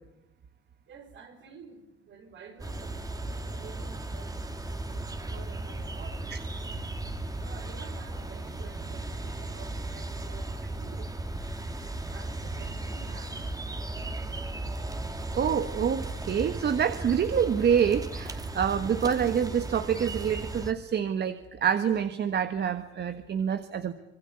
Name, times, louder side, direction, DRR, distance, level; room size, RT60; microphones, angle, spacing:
voice 1, 0.9-6.3 7.3-11.1 12.0-13.5, right 5 dB, 70° right, 6 dB, 5.9 m, -50 dB
sound 1, 2.6-20.7, right 2 dB, 20° right, 2.5 m, -36 dB
voice 2, 15.3-23.9, right 8 dB, 55° right, 10 dB, 1.6 m, -27 dB
26.0 x 21.5 x 9.7 m, 0.88 s
cardioid pair, 90°, 20 cm